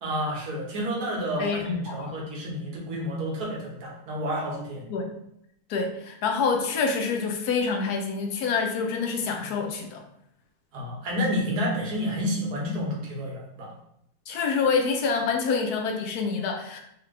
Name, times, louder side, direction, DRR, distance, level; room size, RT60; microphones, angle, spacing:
voice 1, 0.0-4.9 10.7-13.7, equal, 80° right, -2 dB, 1.5 m, -30 dB
voice 2, 1.4-2.1 4.9-5.1 5.7-10.0 14.3-16.8, left 5 dB, 80° left, 3 dB, 1.1 m, -27 dB
3.3 x 2.9 x 3.2 m, 0.76 s
omnidirectional pair, 1.7 m